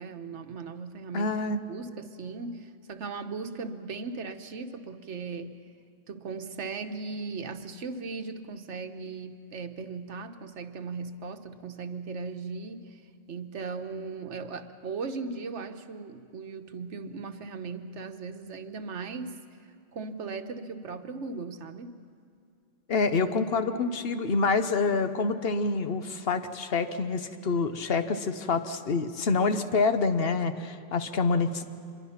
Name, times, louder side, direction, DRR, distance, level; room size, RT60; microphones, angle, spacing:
voice 1, 0.0-1.3 1.7-5.6 6.1-13.0 13.3-19.4 19.9-22.0, right 4 dB, 85° right, 8 dB, 1.3 m, -38 dB
voice 2, 1.1-1.6 22.9-31.6, left 4 dB, 60° left, 9 dB, 1.2 m, -27 dB
25.5 x 22.5 x 5.8 m, 2.5 s
omnidirectional pair, 1.2 m